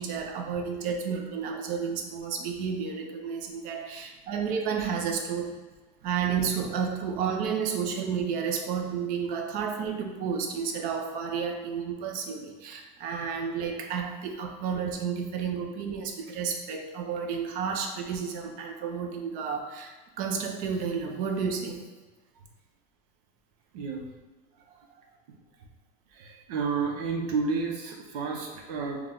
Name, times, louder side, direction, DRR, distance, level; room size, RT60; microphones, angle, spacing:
voice 1, 0.0-5.6 6.0-21.9 24.9-25.0 26.2-26.4, right 6 dB, 45° right, 3 dB, 0.6 m, -31 dB
voice 2, 23.7-24.1 26.1-29.0, right 4 dB, 80° right, 0 dB, 0.9 m, -31 dB
4.7 x 2.3 x 3.8 m, 1.2 s
supercardioid pair, 160°, 20 cm